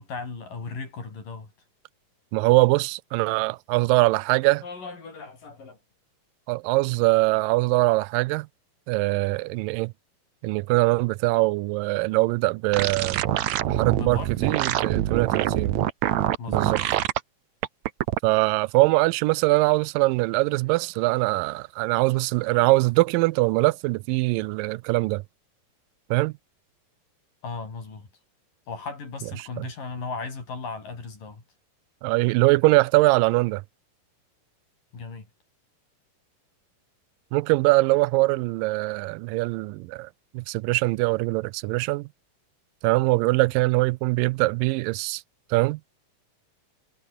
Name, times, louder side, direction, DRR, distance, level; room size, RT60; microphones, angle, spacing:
voice 1, 0.0-1.5 4.6-5.8 14.0-14.5 16.4-16.8 27.4-28.1 28.7-31.4 34.9-35.3, left 4 dB, 70° left, 8.2 m, -36 dB
voice 2, 2.3-4.6 6.5-8.5 8.9-9.9 10.4-13.2 13.7-15.7 16.5-16.8 18.2-25.2 26.1-26.3 29.6-29.7 32.0-33.6 37.3-40.1 40.3-42.1 42.8-45.2 45.5-45.8, right 22 dB, 85° right, 2.2 m, -22 dB
sound 1, 12.7-17.2 17.6-18.2, right 13 dB, 65° right, 2.1 m, -25 dB
omnidirectional pair, 4.0 m